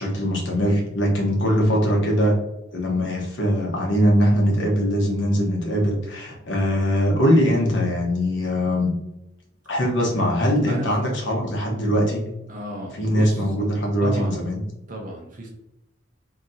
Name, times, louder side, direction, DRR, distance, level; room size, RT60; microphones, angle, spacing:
voice 1, 0.0-2.4 2.7-8.9 9.7-12.3 13.0-14.6, equal, 70° left, -1 dB, 1.0 m, -21 dB
voice 2, 12.5-13.4 14.0-14.4 14.9-15.5, equal, 40° right, 1 dB, 0.8 m, -32 dB
4.1 x 2.9 x 2.6 m, 0.88 s
head